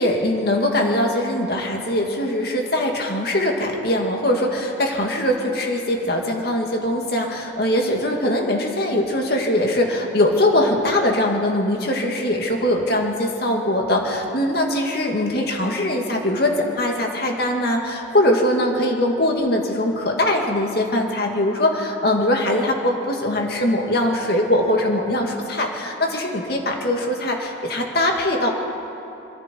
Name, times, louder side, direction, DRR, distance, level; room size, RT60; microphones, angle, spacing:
voice 1, 0.0-28.5, left 1 dB, 55° left, 1 dB, 2.3 m, -21 dB
26.5 x 23.5 x 4.7 m, 2.8 s
head